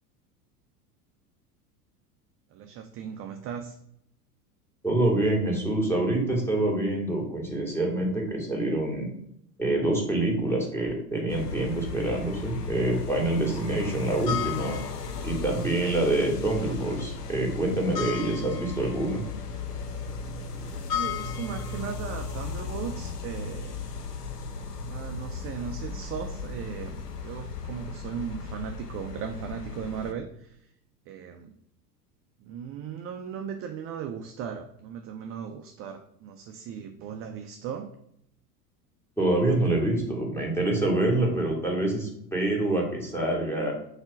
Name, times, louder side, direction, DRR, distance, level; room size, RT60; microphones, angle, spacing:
voice 1, 2.5-3.8 20.9-23.9 24.8-30.7 31.1-31.6 32.4-37.9, right 7 dB, 30° right, 5 dB, 0.5 m, -37 dB
voice 2, 4.8-9.1 9.6-14.8 15.2-19.2 39.2-43.7, right 2 dB, 5° left, 0 dB, 2.1 m, -26 dB
sound 1, 11.3-30.1, left 5 dB, 80° left, 0.9 m, -35 dB
4.4 x 4.3 x 5.8 m, 0.74 s
figure-of-eight pair, 80°, 46 cm